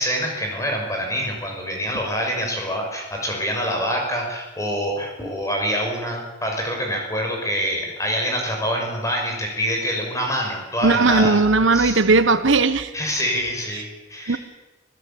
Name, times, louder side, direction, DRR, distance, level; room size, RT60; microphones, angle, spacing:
voice 1, 0.0-11.4 11.7-12.0 12.9-14.4, equal, 15° left, 1 dB, 6.2 m, -26 dB
voice 2, 10.8-12.9 14.3-14.4, right 3 dB, 75° right, 11 dB, 1.2 m, -17 dB
26.5 x 16.0 x 8.7 m, 1.1 s
head